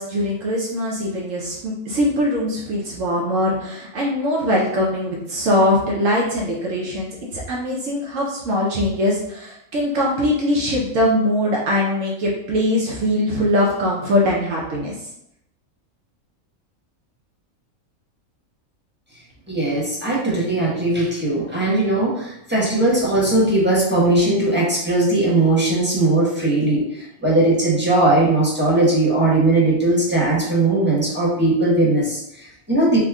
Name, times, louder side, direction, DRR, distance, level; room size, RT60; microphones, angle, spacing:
voice 1, 0.0-14.9, left 1 dB, 70° right, -3 dB, 1.0 m, -21 dB
voice 2, 19.5-33.0, right 2 dB, 10° right, -7 dB, 1.0 m, -19 dB
3.5 x 2.1 x 3.5 m, 0.78 s
omnidirectional pair, 1.4 m